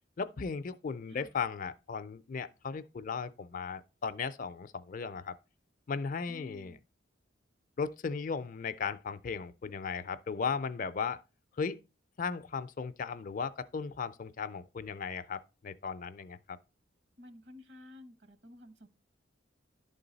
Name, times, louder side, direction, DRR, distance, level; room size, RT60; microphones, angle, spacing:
voice 1, 0.2-5.4 5.9-6.8 7.8-11.2 11.6-11.8 12.2-16.6, left 5 dB, 45° left, 0.4 m, -36 dB
voice 2, 1.1-1.4 6.3-6.8 17.2-18.9, left 2 dB, 60° right, 1.1 m, -52 dB
11.5 x 3.9 x 4.0 m
head